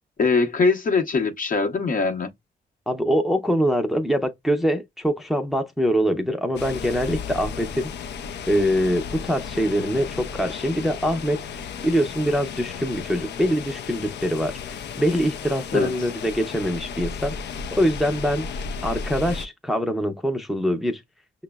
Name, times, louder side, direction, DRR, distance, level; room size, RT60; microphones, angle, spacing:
voice 1, 0.2-2.3 15.7-15.9, left 4 dB, 50° left, 0.8 m, -22 dB
voice 2, 2.9-7.9 8.5-18.5 18.8-21.0, equal, ahead, 0.5 m, -24 dB
sound 1, 6.5-19.5, left 6 dB, 75° left, 0.4 m, -34 dB
5.9 x 2.0 x 2.2 m
cardioid pair, 90°, 18 cm